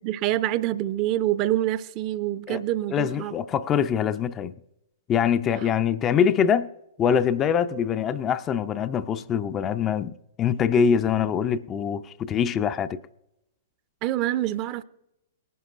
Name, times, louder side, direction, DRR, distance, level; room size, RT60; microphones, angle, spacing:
voice 1, 0.0-3.3 14.0-14.8, right 14 dB, 35° right, 0.6 m, -26 dB
voice 2, 2.9-4.5 5.1-6.7 7.0-13.0, left 7 dB, 25° left, 0.5 m, -24 dB
19.5 x 11.0 x 2.5 m
figure-of-eight pair, 110°, 0 cm